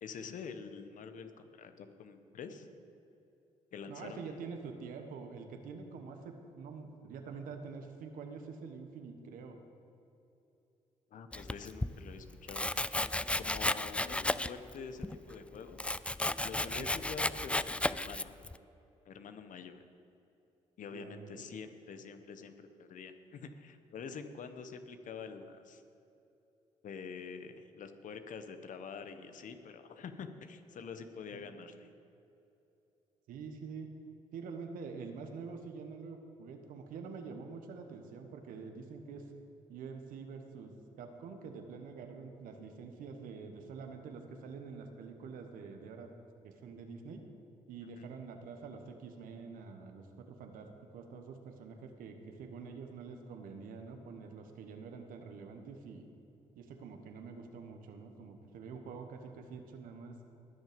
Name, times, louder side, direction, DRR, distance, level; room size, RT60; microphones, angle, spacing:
voice 1, 0.0-2.7 3.7-4.4 11.1-12.7 13.4-15.9 16.4-18.3 19.0-19.8 20.8-25.8 26.8-31.9 48.0-48.1, left 5 dB, 70° left, 9 dB, 1.1 m, -46 dB
voice 2, 3.9-9.6 16.8-16.9 20.9-21.5 31.3-31.4 33.3-33.9 34.3-39.2 39.7-46.1 46.4-47.2 47.7-56.1 56.6-60.2, right 5 dB, 80° right, 5 dB, 1.3 m, -46 dB
Domestic sounds home sounds, 11.3-11.9 12.5-14.7 15.0-18.6, left 1 dB, 10° left, 0.4 m, -34 dB
20.0 x 6.6 x 5.2 m, 2.8 s
supercardioid pair, 50°, 14 cm